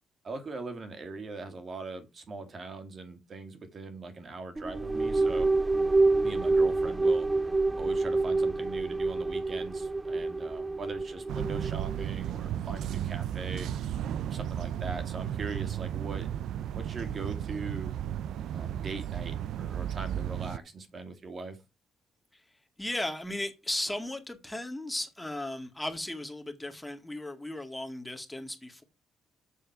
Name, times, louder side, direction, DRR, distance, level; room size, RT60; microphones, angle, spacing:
voice 1, 0.2-5.5 6.2-7.3 7.8-13.7 14.3-16.3 16.7-17.9 18.5-21.6, right 3 dB, 45° right, 2.4 m, -41 dB
sound 1, 4.6-12.1, right 3 dB, 15° right, 0.5 m, -27 dB
sound 2, 11.3-20.6, right 10 dB, 75° right, 0.5 m, -34 dB
voice 2, 22.3-28.8, left 1 dB, 10° left, 1.9 m, -36 dB
7.5 x 6.5 x 6.0 m
cardioid pair, 90°, 0 cm